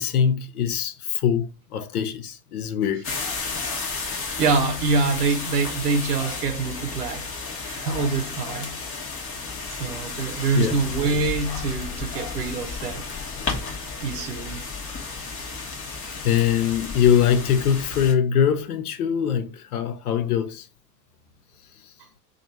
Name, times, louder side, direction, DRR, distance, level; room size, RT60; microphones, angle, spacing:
voice 1, 0.0-3.1 10.5-10.8 16.2-20.7, left 8 dB, 65° left, 0.7 m, -22 dB
sound 1, 3.0-18.1, left 4 dB, 30° left, 1.0 m, -33 dB
voice 2, 4.1-7.3 7.6-8.8 9.8-13.0 14.0-14.6, right 4 dB, 70° right, 0.7 m, -25 dB
3.0 x 2.5 x 4.0 m
figure-of-eight pair, 85°, 48 cm